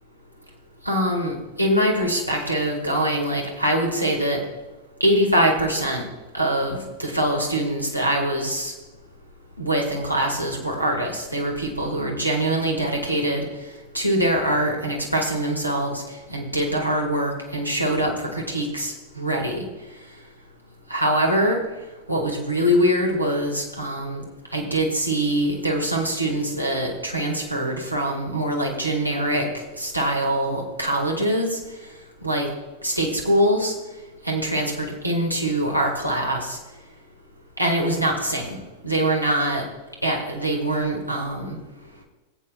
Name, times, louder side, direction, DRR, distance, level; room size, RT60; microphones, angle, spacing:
voice 1, 0.8-4.4 5.0-6.0 6.3-8.7 9.6-13.4 13.9-19.7 20.9-21.6 22.1-24.2 24.5-31.6 32.2-32.5 32.8-33.7 34.2-36.6 37.6-38.6 38.8-39.6 40.0-41.6, right 1 dB, 90° right, 0 dB, 1.7 m, -23 dB
17.0 x 8.4 x 2.3 m, 1.2 s
figure-of-eight pair, 90°, 0 cm